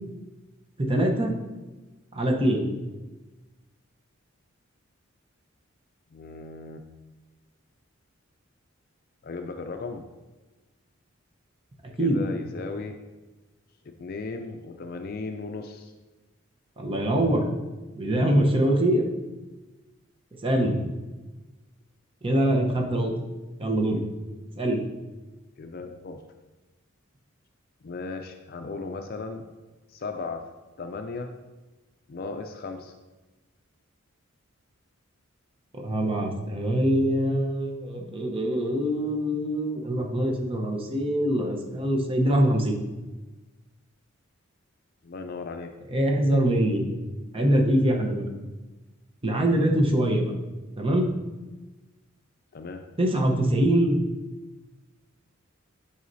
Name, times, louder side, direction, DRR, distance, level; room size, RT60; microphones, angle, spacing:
voice 1, 0.8-1.3 2.1-2.7 11.8-12.2 16.8-17.5 18.0-19.1 20.4-20.9 22.2-23.1 23.6-24.0 24.6-24.8 35.7-42.8 45.9-46.8 47.3-48.3 49.2-50.3 50.8-51.1 53.0-54.0, right 1 dB, 25° right, 1 dB, 0.8 m, -23 dB
voice 2, 6.1-6.8 9.2-10.0 11.9-13.0 13.8-15.9 25.6-26.2 27.8-29.4 29.9-30.5 30.8-31.3 32.1-32.9 45.0-45.7 52.5-52.8, left 3 dB, 45° left, 6 dB, 0.4 m, -36 dB
9.3 x 5.6 x 2.7 m, 1.2 s
head